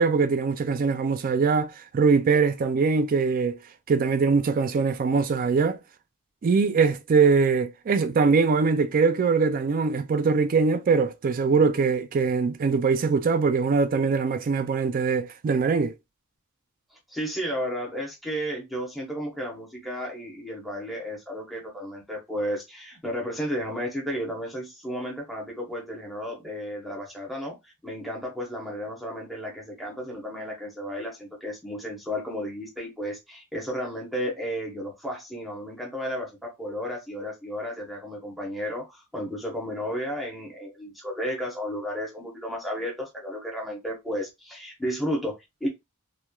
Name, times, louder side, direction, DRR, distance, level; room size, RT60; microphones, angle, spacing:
voice 1, 0.0-3.6 3.9-5.8 6.4-15.9, right 5 dB, 40° right, 0.3 m, -22 dB
voice 2, 16.9-27.6 27.8-45.7, equal, ahead, 0.8 m, -33 dB
3.0 x 2.2 x 2.2 m
head